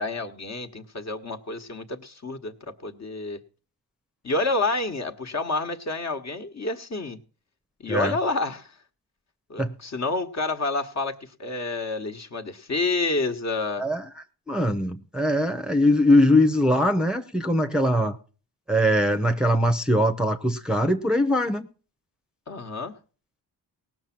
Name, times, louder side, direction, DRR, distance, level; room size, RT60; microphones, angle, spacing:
voice 1, 0.0-3.4 4.2-7.2 7.8-8.8 9.5-13.8 22.5-23.0, left 3 dB, 40° left, 5 dB, 1.4 m, -29 dB
voice 2, 14.5-18.2 18.7-21.7, left 1 dB, ahead, 5 dB, 0.9 m, -21 dB
18.0 x 6.2 x 6.0 m, 0.39 s
cardioid pair, 70°, 42 cm